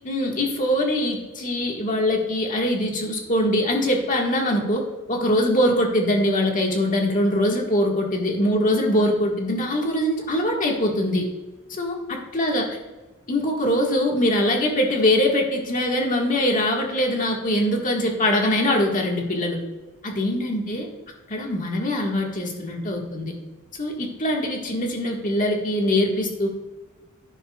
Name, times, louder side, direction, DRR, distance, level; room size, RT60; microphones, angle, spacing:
voice 1, 0.0-4.8 5.1-11.2 11.7-12.6 13.3-19.6 20.0-20.9 21.3-23.3 23.8-26.5, left 1 dB, 40° left, 0 dB, 1.6 m, -22 dB
11.5 x 9.8 x 2.3 m, 1.2 s
head